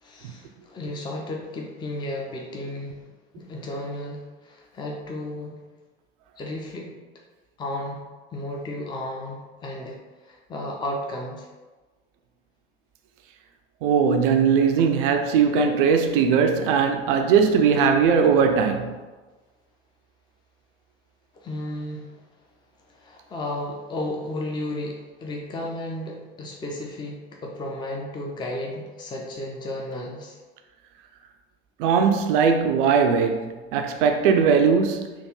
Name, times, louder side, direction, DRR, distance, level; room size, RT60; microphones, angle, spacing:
voice 1, 0.0-3.0 3.3-5.6 6.4-6.9 7.6-8.0 8.3-10.0 10.2-11.5 21.4-22.1 22.9-30.4, left 1 dB, 15° left, 0.5 m, -33 dB
voice 2, 13.8-18.9 31.8-35.1, right 6 dB, 55° right, 0.4 m, -20 dB
3.4 x 2.4 x 3.1 m
figure-of-eight pair, 60°, 31 cm